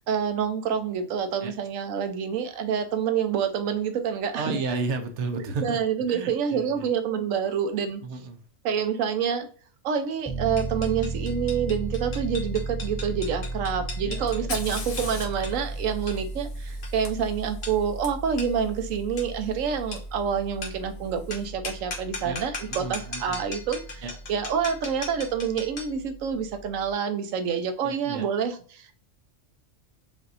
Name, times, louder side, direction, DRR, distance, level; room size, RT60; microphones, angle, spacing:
voice 1, 0.1-4.6 5.4-8.0 8.6-9.5 9.8-24.0 24.3-28.9, right 7 dB, 90° right, 1.1 m, -27 dB
voice 2, 4.3-5.8 6.1-6.9 8.0-8.4 14.0-14.5 22.2-22.4 22.7-23.4 24.0-24.1 27.8-28.2, right 4 dB, 70° right, 0.9 m, -33 dB
Piano, 10.3-26.9, right 2 dB, 10° left, 0.6 m, -36 dB
sound 1, 10.6-26.0, left 3 dB, 45° left, 1.2 m, -40 dB
Fire, 14.3-18.1 20.0-20.1 20.9-21.3, left 4 dB, 70° left, 1.4 m, -40 dB
5.1 x 2.7 x 2.5 m
omnidirectional pair, 1.3 m